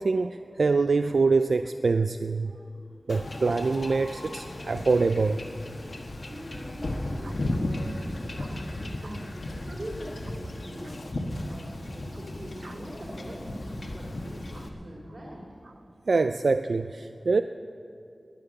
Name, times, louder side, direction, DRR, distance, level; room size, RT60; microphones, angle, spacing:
voice 1, 0.0-2.5 3.1-5.4 12.6-12.7 16.1-17.4, right 4 dB, 85° right, 9 dB, 0.3 m, -25 dB
Wind / Ocean / Boat Water vehicle, 3.1-14.7, left 1 dB, 65° left, 1.5 m, -35 dB
voice 2, 6.1-15.5, equal, 60° right, -5 dB, 3.4 m, -43 dB
18.5 x 10.5 x 6.5 m, 2.7 s
wide cardioid pair, 60°, 0 cm